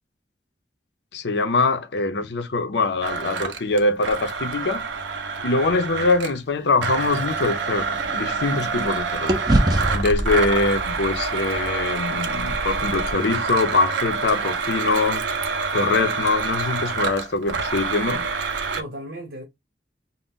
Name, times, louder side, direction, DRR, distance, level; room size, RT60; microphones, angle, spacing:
voice 1, 1.1-4.9 5.4-9.3 9.9-15.2 15.7-18.3, left 3 dB, 70° left, 0.5 m, -23 dB
Domestic sounds home sounds, 3.0-6.4 6.8-18.8, right 4 dB, 90° right, 0.5 m, -27 dB
sound 1, 6.6-8.9 9.3-13.5, right 1 dB, 20° right, 0.4 m, -27 dB
voice 2, 18.7-19.4, right 1 dB, 75° right, 0.9 m, -37 dB
2.6 x 2.1 x 3.6 m
head